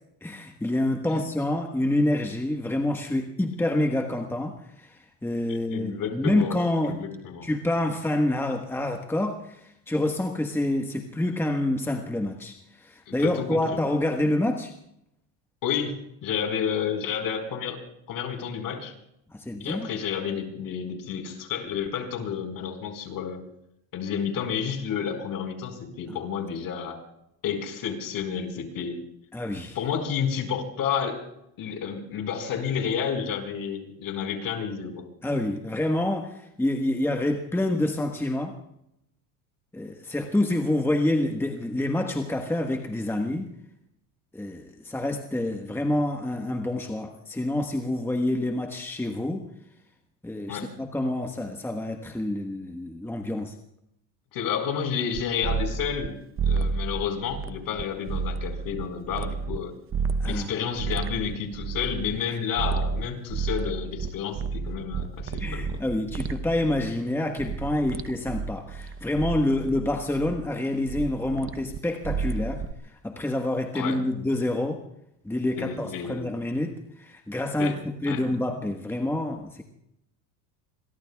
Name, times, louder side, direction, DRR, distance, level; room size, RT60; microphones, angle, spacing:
voice 1, 0.2-6.9 7.4-14.7 19.3-19.9 26.1-26.2 29.3-29.8 35.2-38.5 39.7-43.5 44.3-49.4 50.2-53.5 60.2-60.5 62.3-62.4 65.4-74.8 75.2-76.7 77.0-77.8 78.0-79.6, left 1 dB, 5° left, 3 dB, 1.3 m, -27 dB
voice 2, 5.5-6.6 6.8-7.5 13.1-13.6 15.6-17.8 18.1-18.9 19.6-23.4 23.9-27.0 27.4-29.0 29.7-31.2 31.6-35.1 50.5-50.7 54.3-56.1 56.4-59.7 60.2-65.8 69.5-69.6 73.7-74.0 75.6-76.2 77.6-77.8 78.1-78.2, left 7 dB, 50° left, 5 dB, 4.8 m, -30 dB
sound 1, 55.1-56.1 56.4-59.6 59.9-62.2 62.6-66.9 67.4-70.5 70.9-72.7, right 5 dB, 30° right, 0.8 m, -31 dB
27.0 x 22.5 x 2.3 m, 0.78 s
supercardioid pair, 105°, 43 cm